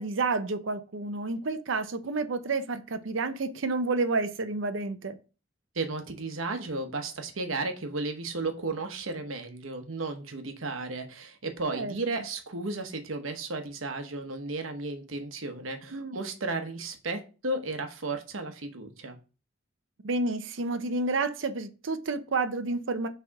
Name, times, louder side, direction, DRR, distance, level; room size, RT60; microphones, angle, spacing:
voice 1, 0.0-5.2 11.7-11.9 15.9-16.2 20.0-23.1, right 3 dB, 70° right, 0.6 m, -30 dB
voice 2, 5.7-19.2, right 3 dB, 85° right, 1.0 m, -34 dB
6.0 x 3.4 x 4.6 m
head